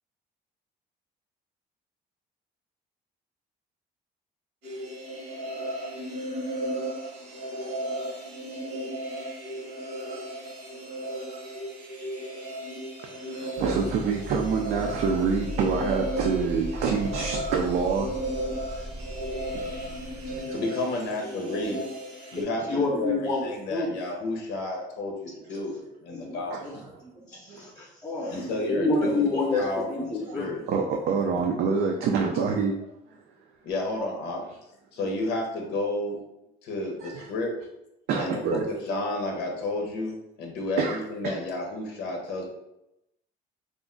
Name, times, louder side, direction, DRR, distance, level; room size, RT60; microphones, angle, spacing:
sound 1, 4.6-22.4, right 1 dB, 90° right, 1.2 m, -35 dB
voice 1, 13.0-18.1 19.5-19.9 20.3-20.6 26.5-26.7 27.5-27.7 30.3-32.7 33.1-33.2 37.0-37.3 38.1-38.6 40.8-41.0 41.2-41.4, right 5 dB, 70° right, 1 dB, 0.4 m, -27 dB
sound 2, 13.6-20.4, equal, 20° right, 0.6 m, -38 dB
voice 2, 20.5-21.8 22.3-25.7 26.0-26.8 28.3-30.6 33.6-34.4 34.9-36.2 36.6-37.6 38.2-42.4, left 2 dB, 90° left, 2 dB, 0.7 m, -31 dB
voice 3, 21.5-21.8 22.6-23.4 23.7-23.9 26.1-30.5, left 3 dB, 20° left, -3 dB, 0.6 m, -29 dB
2.4 x 2.1 x 3.7 m, 0.86 s
cardioid pair, 110°, 17 cm